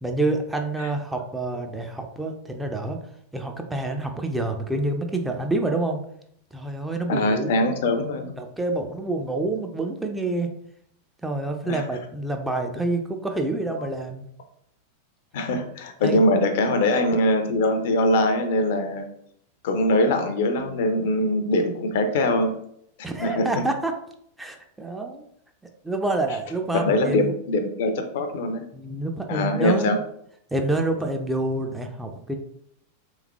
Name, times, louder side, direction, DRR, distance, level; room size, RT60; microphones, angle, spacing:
voice 1, 0.0-3.0 3.3-6.0 6.5-7.6 8.4-10.5 11.2-14.2 16.0-16.2 23.0-23.9 24.4-25.3 25.8-27.3 28.7-30.0 30.5-32.3, right 2 dB, 5° right, 4 dB, 0.4 m, -27 dB
voice 2, 7.1-8.3 11.6-11.8 15.3-19.1 19.6-22.6 23.2-23.5 26.7-28.7 29.3-30.0, left 1 dB, 55° left, 7 dB, 0.4 m, -22 dB
3.4 x 3.1 x 2.3 m, 0.70 s
figure-of-eight pair, 90°, 0 cm